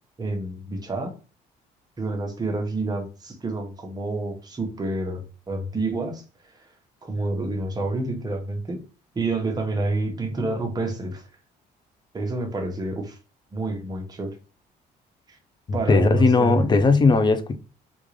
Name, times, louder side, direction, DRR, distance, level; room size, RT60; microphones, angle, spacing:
voice 1, 0.2-1.1 2.0-6.2 7.0-8.8 9.1-11.3 12.1-13.2 13.5-14.3 15.3-15.4 15.7-16.6, right 2 dB, 25° right, 1.0 m, -28 dB
voice 2, 15.7-17.6, left 4 dB, 25° left, 0.5 m, -19 dB
3.6 x 2.4 x 3.2 m
cardioid pair, 110°, 17 cm